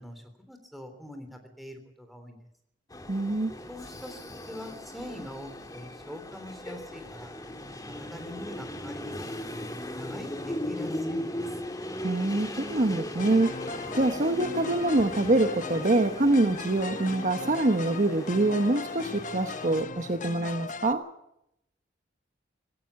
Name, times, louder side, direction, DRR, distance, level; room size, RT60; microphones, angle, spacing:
voice 1, 0.0-2.4 3.7-7.3 7.8-9.4 9.9-11.4, left 1 dB, ahead, 6 dB, 3.5 m, -43 dB
sound 1, 2.9-19.8, left 1 dB, 20° left, 2.4 m, -38 dB
voice 2, 3.1-3.5 12.0-13.5 13.9-21.0, right 2 dB, 45° right, 8 dB, 1.0 m, -25 dB
sound 2, 13.2-20.9, left 4 dB, 45° left, 0.9 m, -39 dB
17.0 x 16.5 x 9.6 m, 0.80 s
head